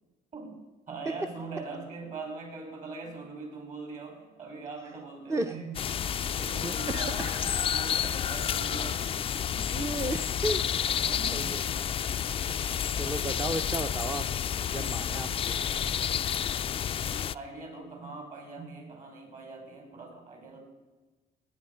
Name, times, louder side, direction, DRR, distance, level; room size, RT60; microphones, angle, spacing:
voice 1, 0.9-5.8 6.3-9.1 9.5-9.8 10.9-11.6 15.6-15.7 17.1-20.6, right 3 dB, 45° right, 3 dB, 5.3 m, -42 dB
sound 1, 5.7-17.3, left 9 dB, 35° left, 0.4 m, -30 dB
voice 2, 6.6-7.4 9.7-10.6 11.3-12.0 12.5-14.2 14.7-15.7, right 2 dB, 15° right, 7 dB, 0.6 m, -34 dB
18.0 x 9.6 x 5.5 m, 1.2 s
cardioid pair, 110°, 17 cm